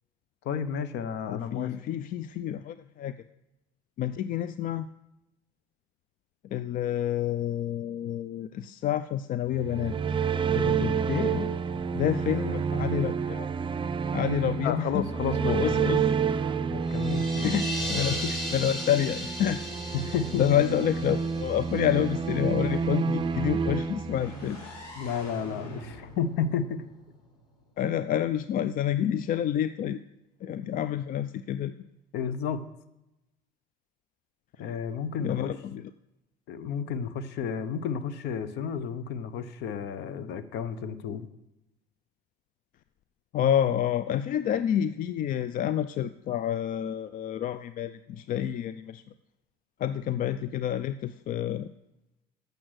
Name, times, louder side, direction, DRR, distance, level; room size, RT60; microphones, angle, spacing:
voice 1, 0.4-1.7 10.8-11.5 14.5-15.9 16.7-17.5 18.2-18.3 20.1-20.6 25.0-26.9 32.1-32.6 34.6-35.5 36.5-41.3, left 7 dB, 65° left, 13 dB, 0.8 m, -32 dB
voice 2, 1.3-3.2 4.0-4.9 6.5-9.9 10.5-11.0 11.9-13.5 14.1-15.1 15.4-16.0 17.4-18.2 18.5-19.6 20.1-24.6 27.8-30.0 30.4-31.8 35.2-35.9 43.3-49.0 49.8-51.7, left 10 dB, 45° left, 12 dB, 0.4 m, -28 dB
sound 1, 9.5-24.7, right 6 dB, 25° right, 0.5 m, -29 dB
sound 2, 16.8-22.5, left 1 dB, ahead, 4.5 m, -37 dB
sound 3, 24.1-27.9, equal, 90° left, 3.8 m, -45 dB
8.6 x 6.6 x 6.3 m, 0.91 s
supercardioid pair, 90°, 19 cm